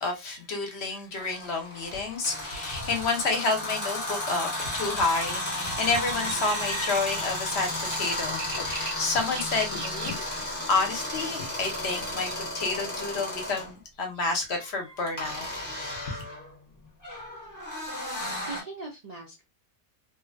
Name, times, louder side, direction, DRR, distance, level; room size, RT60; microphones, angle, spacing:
voice 1, 0.0-10.1 10.4-12.3 12.5-15.6, left 3 dB, 55° left, 0.8 m, -29 dB
sound 1, 1.2-13.7 15.2-18.6, left 1 dB, 20° left, 0.6 m, -33 dB
sound 2, 5.1-12.4, right 4 dB, 55° right, 0.7 m, -43 dB
Packing tape duct tape, 8.3-8.7 9.7-10.2 11.2-11.5 13.0-13.2 13.6-13.8 14.0-14.4, left 6 dB, 85° left, 1.1 m, -42 dB
voice 2, 18.2-19.4, right 3 dB, 75° right, 0.3 m, -41 dB
2.8 x 2.1 x 2.4 m
omnidirectional pair, 1.5 m